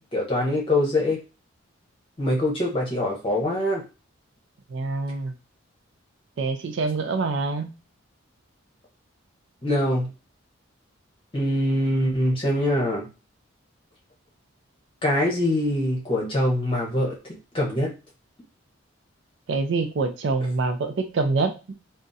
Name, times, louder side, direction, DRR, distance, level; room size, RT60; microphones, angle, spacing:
voice 1, 0.1-1.2 2.2-3.8 9.6-10.1 11.3-13.1 15.0-17.2 17.5-17.9, left 1 dB, 25° left, -2 dB, 0.9 m, -23 dB
voice 2, 4.7-5.3 6.4-7.7 19.5-21.7, right 3 dB, 60° right, 7 dB, 0.4 m, -25 dB
3.5 x 2.1 x 2.6 m, 0.30 s
head